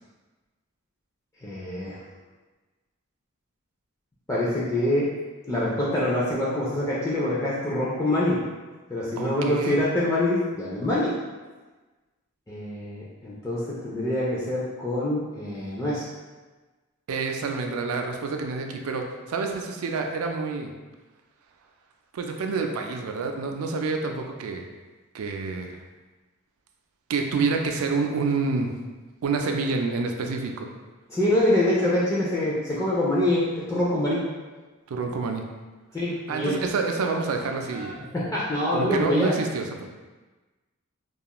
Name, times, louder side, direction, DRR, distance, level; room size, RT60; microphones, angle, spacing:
voice 1, 1.4-2.0 4.3-5.1 5.5-8.4 8.9-11.2 12.5-16.1 31.1-34.2 35.9-36.7 37.7-39.4, left 1 dB, 15° left, -8 dB, 0.3 m, -25 dB
voice 2, 9.2-9.8 17.1-20.7 22.1-24.6 25.1-25.8 27.1-28.8 29.2-30.7 34.9-35.4 36.3-37.9 38.7-39.9, right 4 dB, 85° right, 3 dB, 0.4 m, -28 dB
2.4 x 2.3 x 2.9 m, 1.2 s
head